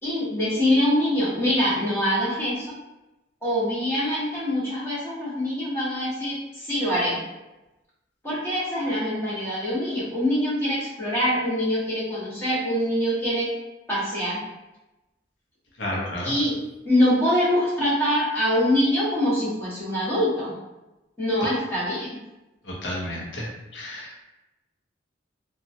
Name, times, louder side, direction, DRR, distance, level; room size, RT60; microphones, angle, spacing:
voice 1, 0.0-2.6 3.4-7.2 8.2-13.5 13.9-14.4 16.2-16.5 16.8-20.5 21.2-22.2, equal, 15° left, -10 dB, 1.1 m, -24 dB
voice 2, 15.8-16.3 22.6-23.5 23.7-24.3, left 1 dB, 80° left, -5 dB, 0.7 m, -31 dB
2.8 x 2.3 x 2.6 m, 1.0 s
head